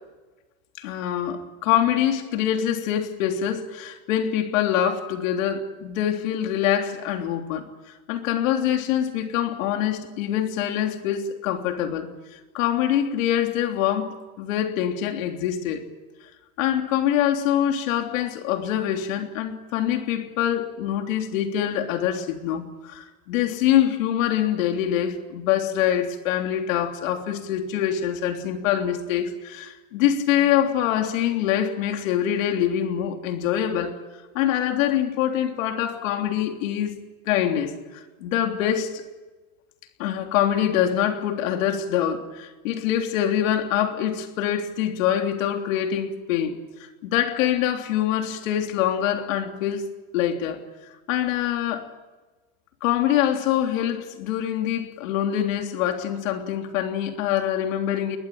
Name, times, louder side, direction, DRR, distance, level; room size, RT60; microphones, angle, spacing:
voice 1, 0.8-7.7 8.1-15.8 16.6-34.0 34.4-37.0 37.3-39.0 40.0-49.9 50.1-50.6 51.1-51.9 52.8-58.2, left 10 dB, 75° left, 3.4 m, -24 dB
21.5 x 20.5 x 9.2 m
supercardioid pair, 165°, 41 cm